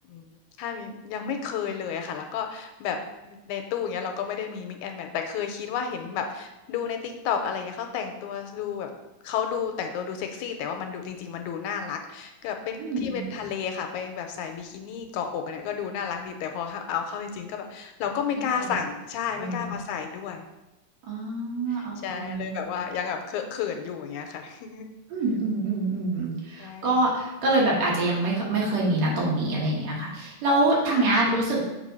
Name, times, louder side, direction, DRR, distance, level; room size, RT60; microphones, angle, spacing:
voice 1, 0.6-3.0 3.3-8.9 9.2-20.5 21.7-24.9 26.6-27.1 30.9-31.1, left 7 dB, 80° left, 5 dB, 1.9 m, -32 dB
voice 2, 12.8-13.2 18.5-18.7 19.4-19.7 21.1-22.6 25.1-31.6, right 2 dB, 65° right, -4 dB, 2.6 m, -25 dB
6.6 x 3.6 x 5.3 m, 1.0 s
omnidirectional pair, 3.5 m